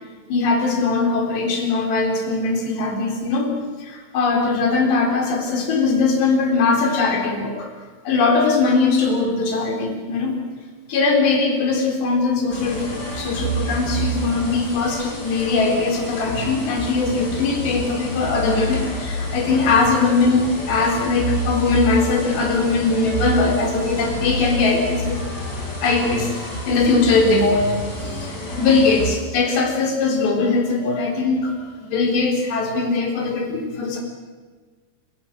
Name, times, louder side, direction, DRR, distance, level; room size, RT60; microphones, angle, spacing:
voice 1, 0.3-3.5 3.8-7.7 8.1-10.4 10.9-25.2 25.8-34.0, left 3 dB, 80° left, 2 dB, 6.1 m, -20 dB
sound 1, 12.5-29.1, right 1 dB, 25° left, 5.0 m, -29 dB
27.0 x 17.5 x 7.7 m, 1.5 s
omnidirectional pair, 4.9 m